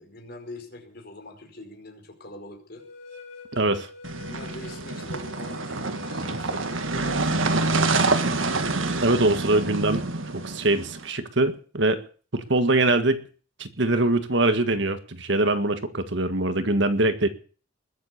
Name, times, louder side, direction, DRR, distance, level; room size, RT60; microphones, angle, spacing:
voice 1, 0.0-2.8 4.2-8.2 9.5-9.8, left 1 dB, 50° left, 3 dB, 5.1 m, -43 dB
sound 1, 2.8-10.6, left 5 dB, 35° left, 5.4 m, -45 dB
voice 2, 3.5-3.9 9.0-10.0 10.4-12.0 12.3-13.2 13.6-17.3, right 2 dB, 60° right, 9 dB, 1.8 m, -23 dB
sound 2, 4.0-11.0, right 3 dB, 75° right, 1.7 m, -27 dB
20.5 x 8.1 x 8.3 m, 0.41 s
head